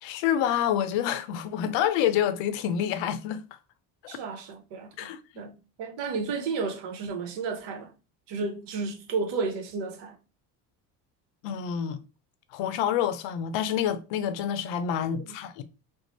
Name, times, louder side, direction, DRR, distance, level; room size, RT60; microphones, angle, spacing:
voice 1, 0.0-3.4 4.0-4.2 5.0-5.5 11.4-12.0 12.5-15.6, left 9 dB, 65° left, 0.6 m, -28 dB
voice 2, 4.1-7.9 8.3-10.2 15.2-15.4, right 4 dB, 65° right, 0.8 m, -33 dB
2.5 x 2.0 x 3.0 m
supercardioid pair, 75°, 47 cm